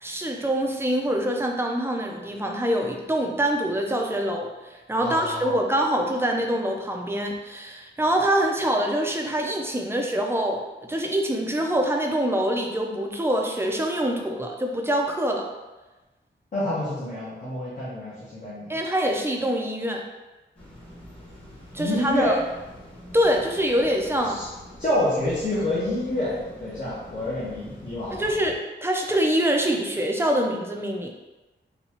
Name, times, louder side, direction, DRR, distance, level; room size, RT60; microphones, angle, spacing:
voice 1, 0.0-4.5 4.9-15.5 18.7-20.0 21.7-22.4 23.1-24.4 28.1-31.1, right 1 dB, 10° right, 1 dB, 0.5 m, -25 dB
voice 2, 5.0-5.6 16.5-18.7 21.8-22.3 24.2-24.5 24.8-28.2, left 1 dB, 45° left, -9 dB, 1.0 m, -27 dB
sound 1, 20.5-28.6, left 1 dB, 30° left, 1.4 m, -45 dB
4.0 x 2.3 x 2.9 m, 1.1 s
cardioid pair, 65°, 20 cm